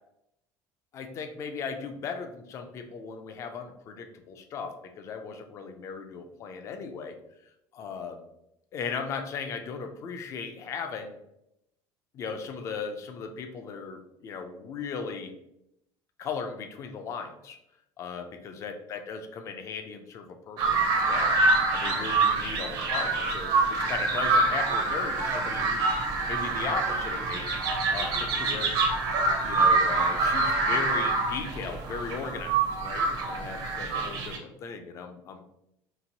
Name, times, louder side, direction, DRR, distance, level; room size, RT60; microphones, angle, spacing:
voice 1, 0.9-7.2 7.7-8.2 8.7-11.2 12.1-15.4 16.2-17.6 18.0-21.4 21.7-27.5 27.9-28.8 29.4-35.5, left 5 dB, 35° left, 6 dB, 0.4 m, -37 dB
sound 1, 20.6-34.4, right 3 dB, 55° right, 0.6 m, -26 dB
2.9 x 2.5 x 2.7 m, 0.81 s
cardioid pair, 150°, 8 cm